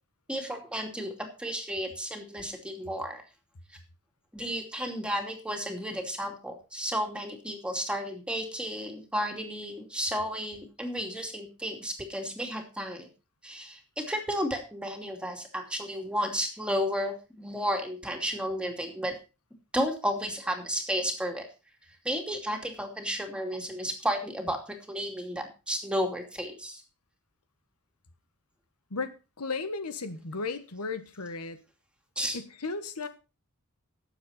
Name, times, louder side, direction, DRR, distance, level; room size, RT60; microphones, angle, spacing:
voice 1, 0.3-3.2 4.3-13.1 13.4-19.2 19.7-21.5 22.0-26.8 32.2-32.4, equal, 5° right, 2.6 m, -32 dB
voice 2, 28.9-31.6 32.3-33.1, left 4 dB, 85° left, 1.3 m, -35 dB
17.0 x 7.4 x 4.3 m
head